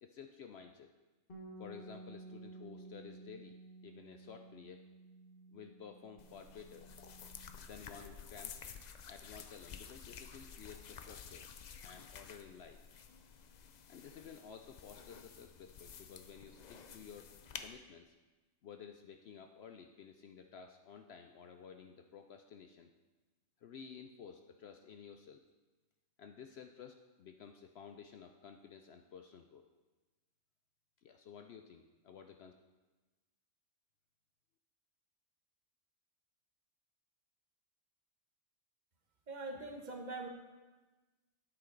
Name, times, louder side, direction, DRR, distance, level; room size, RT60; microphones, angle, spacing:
voice 1, 0.0-0.9 1.6-3.5 3.8-4.8 5.5-6.9 7.6-8.6 9.1-11.5 11.8-12.8 13.9-17.3 17.6-18.2 18.6-22.9 23.6-25.4 26.2-29.7 31.0-32.5, left 7 dB, 65° left, 6 dB, 0.7 m, -53 dB
Bass guitar, 1.3-7.5, right 2 dB, 45° left, 1.6 m, -54 dB
sound 1, 6.2-17.7, left 6 dB, 90° left, 0.3 m, -52 dB
voice 2, 39.3-40.3, right 2 dB, 35° right, 2 dB, 1.1 m, -43 dB
9.1 x 8.1 x 3.9 m, 1.2 s
omnidirectional pair, 1.4 m